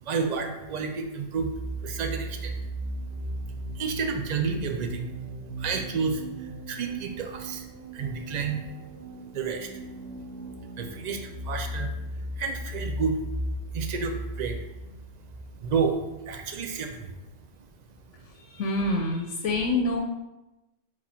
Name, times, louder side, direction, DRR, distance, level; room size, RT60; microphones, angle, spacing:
voice 1, 0.0-1.5 1.8-2.6 3.5-5.1 5.6-8.7 9.3-9.8 10.8-13.4 13.7-14.6 15.5-16.0 16.3-17.2, right 5 dB, 60° right, 4 dB, 0.4 m, -31 dB
sound 1, 1.4-16.9, right 1 dB, 40° right, 0.8 m, -37 dB
voice 2, 18.4-20.0, left 2 dB, 75° left, 1 dB, 0.9 m, -26 dB
4.1 x 3.0 x 4.2 m, 0.99 s
omnidirectional pair, 1.3 m